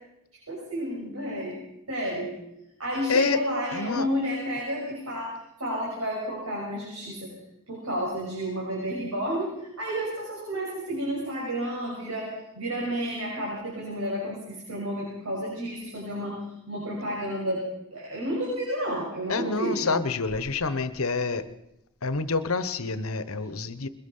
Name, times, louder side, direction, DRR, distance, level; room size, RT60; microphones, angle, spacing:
voice 1, 0.5-1.6 1.9-2.3 2.8-7.3 7.7-12.3 12.5-16.4 16.7-19.9, equal, 80° right, -3 dB, 6.5 m, -31 dB
voice 2, 3.1-3.4 3.7-4.1 19.3-21.5 22.0-23.9, left 4 dB, 75° left, 13 dB, 1.2 m, -27 dB
21.5 x 21.5 x 5.6 m, 0.85 s
head